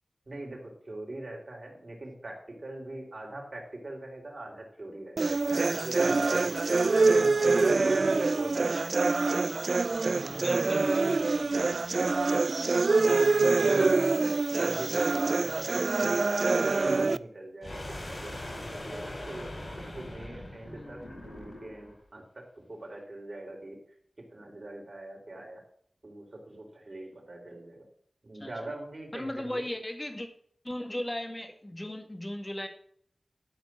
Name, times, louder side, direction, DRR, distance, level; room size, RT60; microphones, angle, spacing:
voice 1, 0.3-9.2 9.9-11.5 13.6-14.0 14.6-23.8 24.3-25.6 26.0-27.8 28.2-29.6, right 1 dB, 55° right, -1 dB, 4.4 m, -43 dB
sound 1, 5.2-17.2, right 3 dB, 70° right, 0.4 m, -25 dB
sound 2, 5.5-8.0, left 2 dB, 85° left, 4.0 m, -49 dB
voice 2, 7.2-7.5 10.3-11.5 12.9-13.5 20.7-21.3 28.4-28.5 29.1-30.3 30.6-32.7, left 1 dB, 25° left, 6 dB, 2.0 m, -38 dB
sound 3, 17.6-21.9, left 1 dB, 45° left, 5.2 m, -41 dB
12.5 x 5.2 x 7.7 m, 0.64 s
cardioid pair, 45°, 0 cm